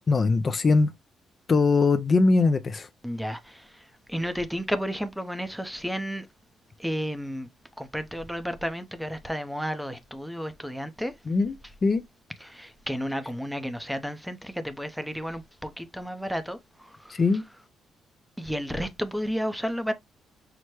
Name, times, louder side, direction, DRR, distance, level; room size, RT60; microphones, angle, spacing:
voice 1, 0.1-0.9 1.5-2.9 11.3-11.6 11.8-12.0 17.1-17.4, left 3 dB, 35° left, 0.5 m, -21 dB
voice 2, 3.0-6.3 6.8-7.5 7.8-11.1 12.4-17.2 18.4-19.9, equal, ahead, 0.6 m, -32 dB
5.8 x 2.1 x 3.1 m
cardioid pair, 90°, 0 cm